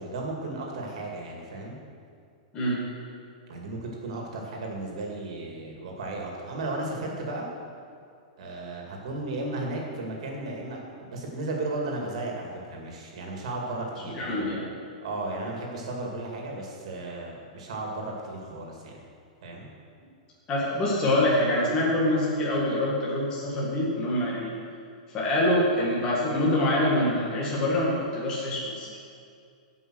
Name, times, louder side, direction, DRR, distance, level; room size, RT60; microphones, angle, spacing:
voice 1, 0.0-1.8 3.5-7.5 8.4-14.5 15.0-18.9 19.4-19.7, right 2 dB, 55° right, 0 dB, 2.3 m, -34 dB
voice 2, 14.1-14.7 20.5-24.5 25.1-28.9, left 1 dB, 15° left, -6 dB, 1.8 m, -25 dB
16.5 x 5.6 x 6.3 m, 2.3 s
supercardioid pair, 180°, 4 cm